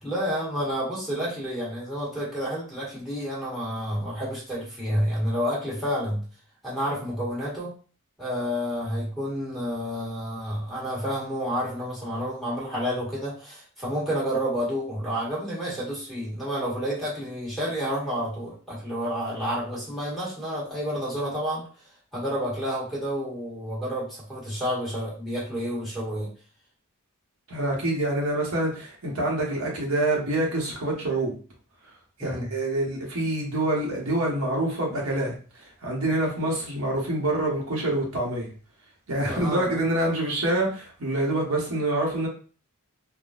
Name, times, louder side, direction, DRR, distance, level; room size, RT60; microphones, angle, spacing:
voice 1, 0.0-6.2 6.6-7.7 8.2-21.7 22.1-26.3 32.2-32.5 39.3-39.8, equal, ahead, -7 dB, 1.4 m, -30 dB
voice 2, 27.5-31.3 32.2-38.5 39.1-42.3, right 1 dB, 85° right, -3 dB, 1.1 m, -26 dB
3.6 x 2.3 x 2.4 m, 0.38 s
head